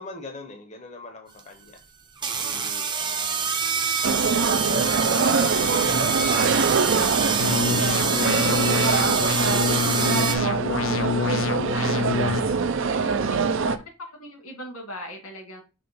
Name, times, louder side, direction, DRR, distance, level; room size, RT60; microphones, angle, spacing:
voice 1, 0.0-1.8 2.4-3.5 4.3-4.8 5.1-11.4 12.5-13.3, left 2 dB, 30° left, 0.8 m, -42 dB
sound 1, 1.4-1.5 2.2-10.4, right 6 dB, 20° right, 0.7 m, -26 dB
voice 2, 3.1-3.8 10.8-11.9 14.1-15.6, equal, 85° left, 2.4 m, -41 dB
sound 2, 4.0-13.8, right 5 dB, 60° right, 0.6 m, -24 dB
sound 3, 7.4-12.4, left 6 dB, 65° left, 0.5 m, -26 dB
5.9 x 3.2 x 5.4 m
head